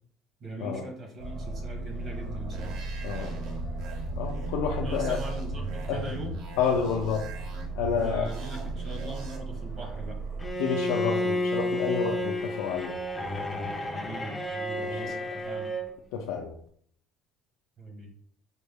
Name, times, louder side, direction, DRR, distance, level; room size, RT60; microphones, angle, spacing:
voice 1, 0.4-2.8 4.8-6.4 7.9-10.2 13.9-15.7 17.8-18.1, right 1 dB, 40° right, 1 dB, 1.1 m, -40 dB
Aircraft, 1.2-10.5, right 3 dB, 80° right, 1.6 m, -36 dB
sound 1, 2.5-9.4, right 1 dB, 60° right, 0.8 m, -41 dB
voice 2, 3.0-3.3 4.2-5.2 5.9-6.0 6.6-7.2 7.8-8.3 10.6-13.0 14.8-15.0 16.1-16.5, left 6 dB, 90° left, 1 dB, 0.4 m, -29 dB
Bowed string instrument, 10.4-15.9, left 1 dB, 10° left, 0.4 m, -31 dB
5.1 x 2.1 x 3.4 m, 0.63 s
cardioid pair, 155°, 0 cm